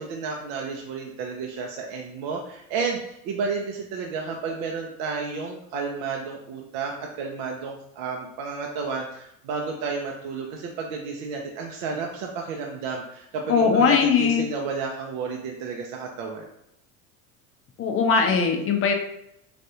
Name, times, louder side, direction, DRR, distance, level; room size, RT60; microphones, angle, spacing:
voice 1, 0.0-16.4, right 4 dB, 60° right, 0 dB, 0.6 m, -31 dB
voice 2, 13.5-14.5 17.8-18.9, left 6 dB, 30° left, 3 dB, 0.5 m, -20 dB
3.3 x 2.5 x 2.7 m, 0.78 s
supercardioid pair, 105°, 43 cm